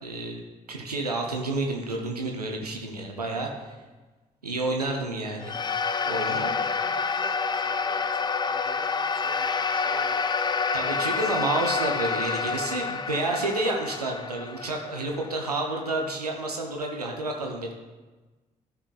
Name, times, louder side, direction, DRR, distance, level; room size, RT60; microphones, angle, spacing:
voice 1, 0.0-3.8 4.4-5.6 6.1-6.5 10.7-17.7, right 2 dB, 90° right, 2 dB, 0.5 m, -30 dB
voice 2, 3.3-3.8 6.4-10.6, right 4 dB, 25° right, 6 dB, 1.0 m, -49 dB
sound 1, 5.4-15.9, left 5 dB, 20° left, 0.5 m, -28 dB
12.5 x 5.8 x 2.4 m, 1.2 s
figure-of-eight pair, 40°, 19 cm